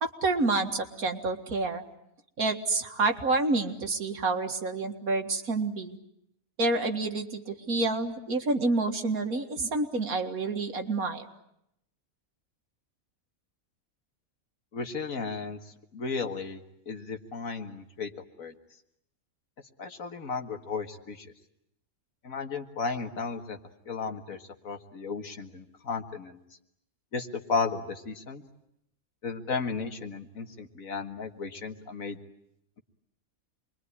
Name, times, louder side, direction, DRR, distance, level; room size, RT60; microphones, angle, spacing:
voice 1, 0.0-1.8 2.4-6.0 6.6-11.3, right 3 dB, 80° right, 5 dB, 2.3 m, -28 dB
voice 2, 14.7-15.6 15.9-18.1 18.4-18.5 19.8-21.3 22.2-23.6 23.9-26.4 27.1-28.4 29.2-32.2, left 4 dB, 70° left, 6 dB, 2.1 m, -34 dB
27.5 x 22.0 x 9.7 m, 0.79 s
omnidirectional pair, 1.5 m